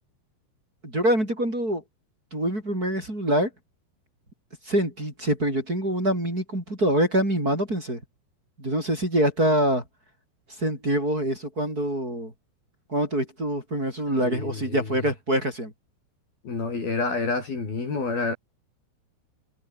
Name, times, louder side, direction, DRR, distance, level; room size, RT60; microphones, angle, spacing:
voice 1, 0.8-1.8 2.3-3.5 4.6-8.0 8.6-9.8 10.6-12.3 12.9-15.7, right 1 dB, 15° right, 8.3 m, -25 dB
voice 2, 14.2-15.1 16.4-18.3, left 3 dB, 45° left, 8.0 m, -29 dB
omnidirectional pair, 5.9 m